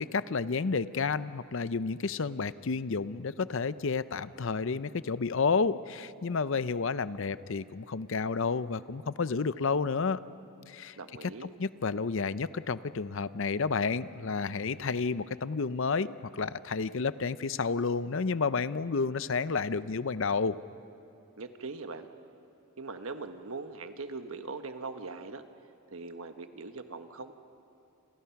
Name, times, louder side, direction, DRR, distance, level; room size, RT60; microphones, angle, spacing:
voice 1, 0.0-10.2 10.7-20.6, left 4 dB, 60° left, 15 dB, 0.6 m, -31 dB
voice 2, 10.9-11.5 21.4-22.1 22.8-25.4 25.9-27.3, right 3 dB, 70° right, 8 dB, 1.3 m, -41 dB
29.0 x 27.5 x 5.9 m, 2.8 s
head